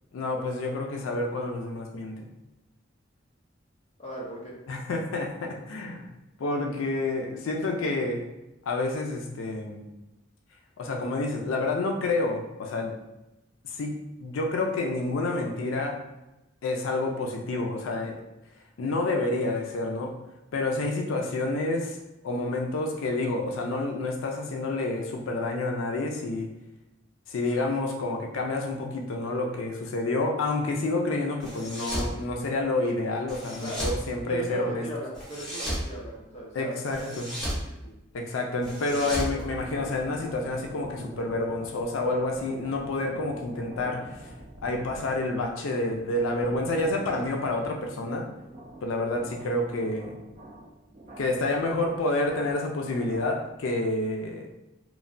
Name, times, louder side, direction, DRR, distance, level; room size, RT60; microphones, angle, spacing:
voice 1, 0.1-2.2 4.7-6.1 6.4-8.2 8.7-9.8 10.8-12.9 13.6-16.0 16.6-18.2 18.8-20.1 20.5-22.0 22.2-26.5 27.3-34.8 36.5-37.3 38.1-44.3 44.6-48.3 48.8-50.2 51.2-54.5, left 2 dB, 90° left, 1 dB, 0.4 m, -29 dB
voice 2, 4.0-4.5 33.6-33.9 34.3-37.9, right 1 dB, 35° left, -4 dB, 0.6 m, -38 dB
sound 1, 31.4-32.1 33.3-34.0 35.1-35.9 36.9-37.6 38.6-40.1, equal, ahead, 0.8 m, -33 dB
sound 2, 38.9-53.6, right 1 dB, 40° right, 0.4 m, -44 dB
3.0 x 2.1 x 2.5 m, 0.96 s
head